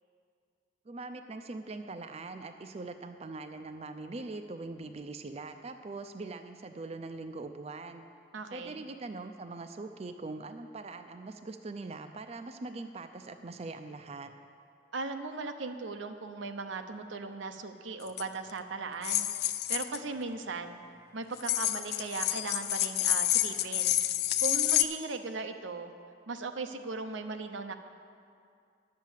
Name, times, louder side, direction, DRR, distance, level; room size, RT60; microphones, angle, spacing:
voice 1, 0.9-8.1 8.5-14.3, right 3 dB, 35° right, 8 dB, 0.4 m, -42 dB
voice 2, 8.3-8.8 14.9-19.3 19.7-20.8 21.1-24.0 24.4-25.9 26.3-27.7, right 3 dB, 90° right, 7 dB, 0.7 m, -38 dB
sound 1, 18.1-18.2 19.0-20.0 21.4-24.8, left 13 dB, 55° left, 0.4 m, -28 dB
10.5 x 7.5 x 7.3 m, 2.3 s
head